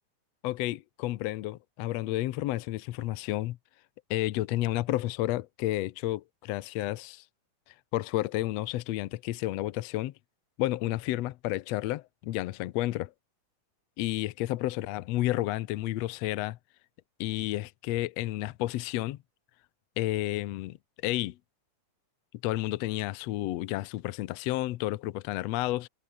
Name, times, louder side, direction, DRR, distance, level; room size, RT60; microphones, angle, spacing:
voice 1, 0.4-3.6 4.1-7.2 7.9-10.1 10.6-13.1 14.0-16.6 17.2-19.2 20.0-20.8 21.0-21.4 22.4-25.9, left 16 dB, 75° left, 1.6 m, -31 dB
omnidirectional pair, 3.7 m